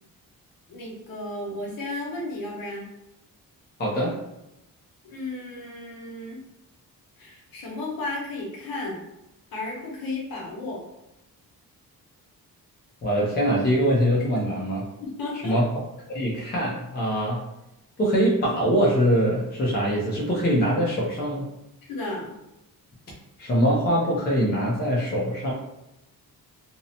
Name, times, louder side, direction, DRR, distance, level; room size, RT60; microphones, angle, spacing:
voice 1, 0.7-2.9 5.0-6.4 7.2-9.0 9.5-10.9 15.0-15.6 21.9-22.3, left 2 dB, 65° left, -3 dB, 0.9 m, -33 dB
voice 2, 3.8-4.2 13.0-14.8 15.4-15.6 16.1-17.4 18.0-21.5 23.4-25.5, equal, 25° left, -4 dB, 0.5 m, -23 dB
2.6 x 2.1 x 2.7 m, 0.89 s
wide cardioid pair, 175°, 37 cm